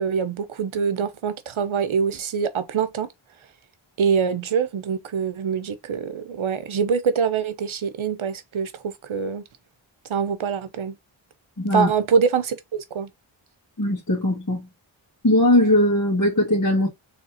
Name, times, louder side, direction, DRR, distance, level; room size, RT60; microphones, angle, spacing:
voice 1, 0.0-3.1 4.0-9.4 10.1-11.0 11.7-13.1, right 6 dB, 80° right, 0.7 m, -24 dB
voice 2, 11.6-11.9 13.8-14.7 15.2-16.9, left 1 dB, 40° left, 1.9 m, -19 dB
4.0 x 3.2 x 2.9 m
cardioid pair, 40°, 48 cm